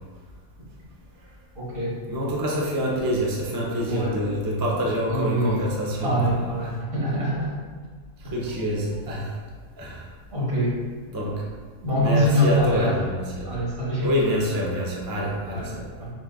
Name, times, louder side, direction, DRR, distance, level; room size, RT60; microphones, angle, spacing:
voice 1, 1.6-2.0 3.8-4.2 5.1-5.7 6.0-7.5 8.4-8.6 10.3-10.7 11.8-13.0 13.4-14.1 15.5-15.7 16.0-16.1, equal, 85° right, -8 dB, 1.9 m, -24 dB
voice 2, 2.1-6.2 8.2-9.3 9.8-10.0 11.1-11.5 12.0-13.5 14.0-15.8, equal, 25° right, -4 dB, 0.4 m, -26 dB
7.0 x 2.5 x 2.2 m, 1.5 s
omnidirectional pair, 1.4 m